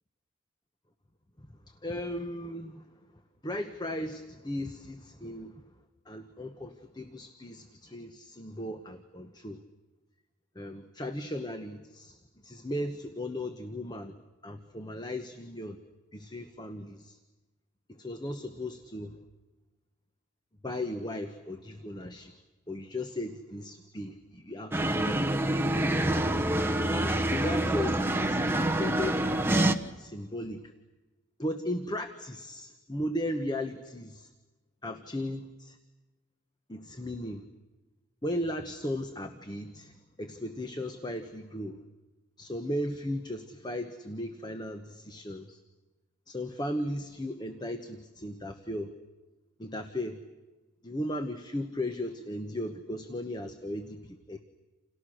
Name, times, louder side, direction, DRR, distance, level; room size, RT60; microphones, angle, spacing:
voice 1, 1.8-2.8 3.4-5.5 6.1-9.6 10.5-14.1 14.4-15.8 16.1-17.2 18.0-19.2 20.6-22.3 22.7-25.2 26.9-30.7 31.4-34.3 34.8-35.8 36.7-37.4 38.2-41.8 42.4-45.6 46.3-48.9 49.6-50.2 50.8-54.4, left 1 dB, 20° left, 7 dB, 1.1 m, -36 dB
sound 1, 24.7-29.7, right 1 dB, 10° right, 1.0 m, -26 dB
30.0 x 28.5 x 6.4 m, 1.1 s
head